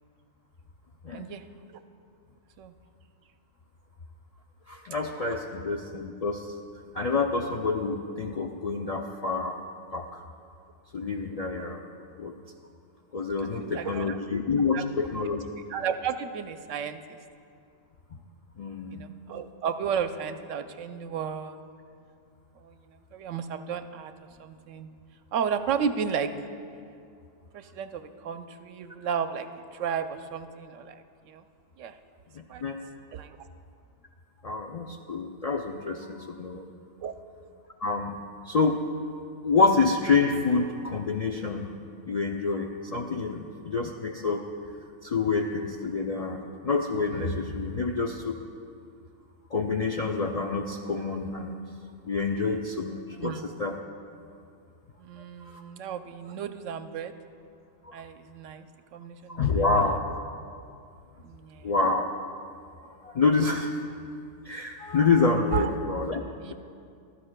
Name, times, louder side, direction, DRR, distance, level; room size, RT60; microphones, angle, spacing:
voice 1, 1.1-1.4 2.6-2.7 13.6-14.2 14.7-14.8 15.7-17.2 18.9-21.6 22.6-22.8 23.1-24.1 24.4-24.9 25.3-26.3 27.5-29.5 29.7-31.4 31.8-31.9 32.5-32.6 33.1-33.4 37.0-37.1 53.2-53.5 55.0-57.1 57.9-58.7 58.9-59.6 61.2-61.7 65.5-65.7 66.5-66.6, right 7 dB, 85° right, 9 dB, 0.9 m, -33 dB
voice 2, 4.7-6.5 6.9-9.6 9.9-10.1 10.9-11.8 12.2-12.4 13.1-15.5 18.6-19.0 32.3-32.8 34.4-36.7 37.8-38.8 39.4-41.8 42.1-44.5 45.0-48.4 49.5-51.6 52.1-53.8 55.4-55.6 57.8-58.0 59.3-60.0 61.6-62.1 62.8-63.8 64.4-66.5, left 4 dB, 65° left, 2 dB, 0.4 m, -27 dB
15.5 x 13.0 x 2.2 m, 2.4 s
omnidirectional pair, 1.3 m